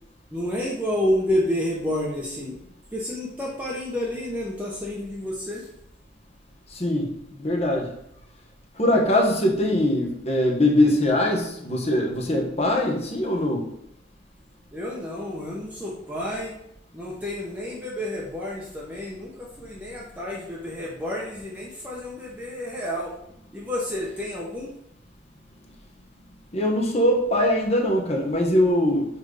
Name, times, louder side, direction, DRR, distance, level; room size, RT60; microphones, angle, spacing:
voice 1, 0.3-2.6 2.9-5.7 14.7-16.5 16.9-23.1 23.5-24.7, left 1 dB, 10° right, -5 dB, 1.0 m, -29 dB
voice 2, 6.7-7.1 7.4-7.9 8.8-13.7 26.5-29.1, left 1 dB, 35° left, 0 dB, 1.2 m, -22 dB
5.3 x 4.4 x 4.9 m, 0.76 s
head